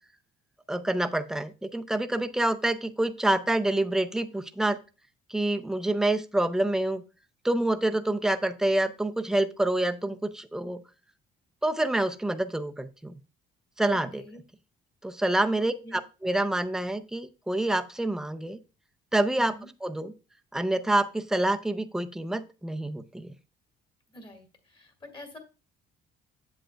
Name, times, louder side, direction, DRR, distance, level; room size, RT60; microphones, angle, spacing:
voice 1, 0.7-4.8 5.3-7.0 7.4-10.8 11.6-13.2 13.8-14.2 15.0-18.6 19.1-19.5 19.8-20.1 20.5-23.3, right 1 dB, 5° right, 9 dB, 0.5 m, -27 dB
voice 2, 15.6-16.0 19.4-19.7 24.1-25.4, left 1 dB, 30° left, 5 dB, 1.8 m, -47 dB
7.7 x 7.5 x 2.2 m, 0.32 s
cardioid pair, 110°, 17 cm